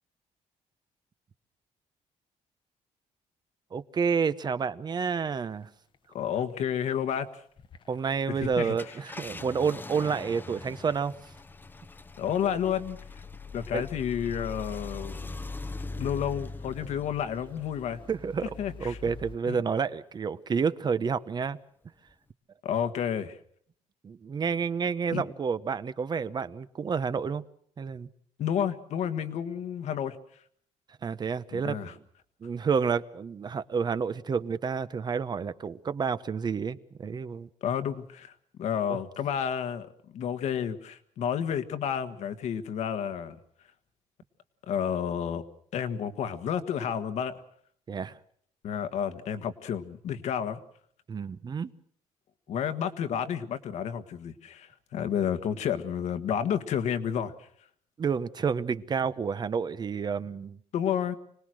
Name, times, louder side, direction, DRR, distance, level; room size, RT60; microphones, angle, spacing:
voice 1, 3.7-5.7 7.9-11.3 13.7-13.8 18.1-21.6 24.0-27.4 27.8-28.1 31.0-32.0 32.4-37.5 38.9-39.0 47.9-48.2 51.1-51.7 58.0-60.6, right 6 dB, 35° right, 14 dB, 0.9 m, -30 dB
sound 1, 5.4-5.6 5.9-6.6 6.9-7.0 7.6-8.6 10.7-19.4, left 4 dB, 45° left, 1.1 m, -43 dB
voice 2, 6.1-7.3 8.3-8.7 12.2-13.0 13.5-15.3 16.0-18.0 18.6-19.0 19.5-19.6 22.6-23.4 25.1-25.2 28.4-30.2 31.5-31.9 37.6-38.3 38.6-43.4 44.6-45.4 45.7-47.3 48.6-50.6 52.5-57.5 60.7-61.1, left 8 dB, 70° left, 9 dB, 1.6 m, -30 dB
Car, 8.6-19.5 19.9-20.0 22.1-22.3, left 2 dB, 15° left, 0.9 m, -45 dB
26.0 x 19.0 x 6.4 m, 0.63 s
cardioid pair, 110°, 12 cm